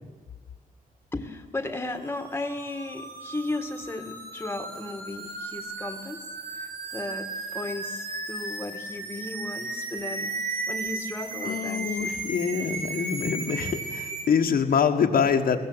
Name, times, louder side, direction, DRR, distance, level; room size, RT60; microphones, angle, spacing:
voice 1, 1.1-6.2 6.5-12.1, left 2 dB, 15° left, 8 dB, 1.6 m, -35 dB
sound 1, 2.0-14.3, right 3 dB, 75° right, 3.7 m, -35 dB
voice 2, 11.4-15.6, left 6 dB, 75° left, 4 dB, 1.5 m, -25 dB
21.5 x 15.5 x 8.0 m, 1.4 s
wide cardioid pair, 125°, 16 cm